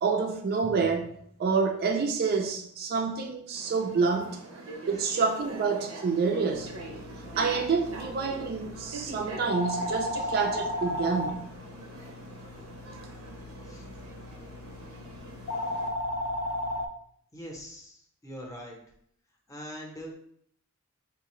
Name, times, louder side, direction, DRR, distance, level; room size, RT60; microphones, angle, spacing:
voice 1, 0.0-4.4 4.9-6.7 7.4-11.5, right 5 dB, 45° right, 0.3 m, -28 dB
sound 1, 3.5-15.9, right 2 dB, 90° right, 0.6 m, -44 dB
sound 2, 6.5-16.9, left 1 dB, 70° left, 0.3 m, -36 dB
voice 2, 17.3-18.8 19.5-20.1, equal, 15° left, 0.6 m, -43 dB
3.6 x 2.5 x 3.0 m
head